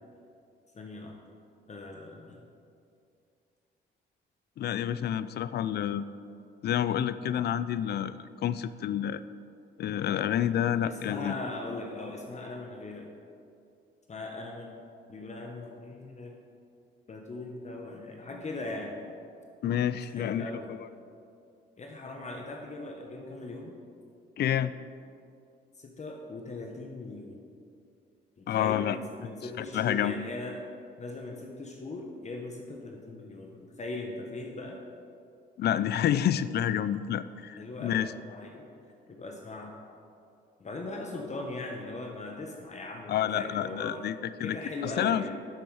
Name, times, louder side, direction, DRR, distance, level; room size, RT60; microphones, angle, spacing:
voice 1, 0.7-1.2 1.7-2.4 10.8-13.1 14.1-14.8 15.1-16.3 17.1-19.0 20.1-20.8 21.8-23.7 25.8-27.4 28.4-30.6 31.0-34.8 37.6-38.6 39.1-39.7 40.6-44.0 44.4-45.4, left 2 dB, 35° left, 1 dB, 1.2 m, -39 dB
voice 2, 4.6-6.0 6.6-9.2 9.8-11.4 19.6-20.5 24.4-24.7 28.5-29.0 29.6-30.2 35.6-38.1 43.1-44.6 45.0-45.2, left 10 dB, 55° left, 15 dB, 0.4 m, -28 dB
12.0 x 7.0 x 4.9 m, 2.4 s
cardioid pair, 90°, 20 cm